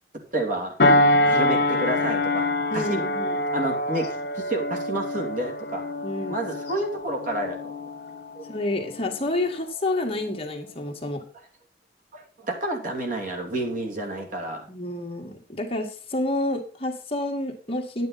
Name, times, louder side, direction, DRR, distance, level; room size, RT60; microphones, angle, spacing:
voice 1, 0.3-0.7 1.2-2.5 2.7-3.0 3.5-4.1 4.4-5.8 6.3-7.7 8.3-8.4 12.1-14.7, right 1 dB, 50° right, 2 dB, 3.0 m, -29 dB
sound 1, 0.8-9.6 10.1-10.3, left 1 dB, 65° left, 1.5 m, -25 dB
voice 2, 2.7-3.4 6.0-6.4 8.5-11.2 14.7-18.1, left 1 dB, 35° left, 1 dB, 2.0 m, -29 dB
10.5 x 9.4 x 4.2 m, 0.38 s
head